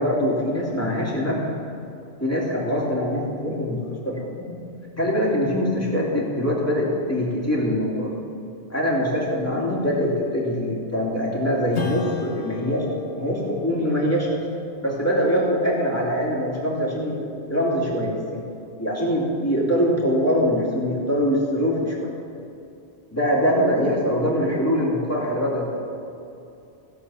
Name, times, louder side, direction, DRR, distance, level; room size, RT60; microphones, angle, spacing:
voice 1, 0.0-1.5 2.2-4.5 5.0-8.1 8.7-12.9 13.2-14.4 14.8-18.4 18.8-22.1 23.1-25.7, equal, 15° left, -5 dB, 2.9 m, -23 dB
Strum, 11.7-16.7, left 4 dB, 90° left, 1.6 m, -37 dB
16.0 x 7.8 x 7.2 m, 2.7 s
omnidirectional pair, 1.1 m